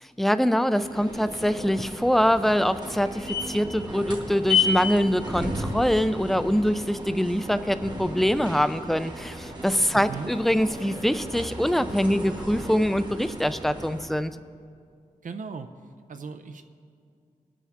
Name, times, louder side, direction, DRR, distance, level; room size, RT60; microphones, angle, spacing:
voice 1, 0.2-14.3, equal, ahead, 12 dB, 0.3 m, -24 dB
sound 1, 0.7-14.2, left 3 dB, 30° right, 1.2 m, -33 dB
voice 2, 9.9-10.3 15.2-15.7 16.1-16.6, right 5 dB, 70° right, 7 dB, 0.5 m, -37 dB
19.5 x 7.1 x 3.5 m, 2.2 s
wide cardioid pair, 120°, 14 cm